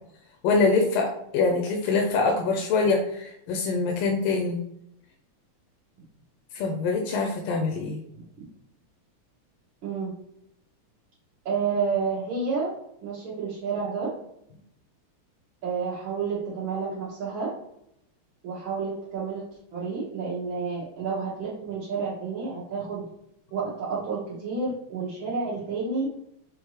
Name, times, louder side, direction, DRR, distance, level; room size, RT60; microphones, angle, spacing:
voice 1, 0.4-4.6 6.5-8.0, left 4 dB, 85° left, 1 dB, 1.5 m, -24 dB
voice 2, 8.1-8.5 9.8-10.1 11.5-12.7 13.0-14.1 15.6-17.5 18.4-19.4 19.7-23.1 23.5-26.1, right 5 dB, 65° right, -9 dB, 2.0 m, -30 dB
5.7 x 2.6 x 3.0 m, 0.76 s
omnidirectional pair, 2.4 m